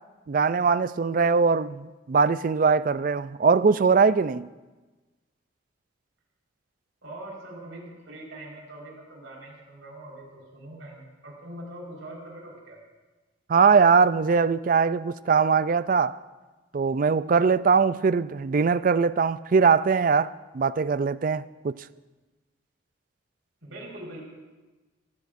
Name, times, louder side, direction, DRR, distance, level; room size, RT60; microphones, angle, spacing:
voice 1, 0.3-4.5 13.5-16.2 16.7-21.8, right 5 dB, 45° right, 0.3 m, -21 dB
voice 2, 7.0-12.8 23.6-24.2, right 1 dB, 70° right, 4.6 m, -42 dB
23.5 x 16.0 x 2.6 m
head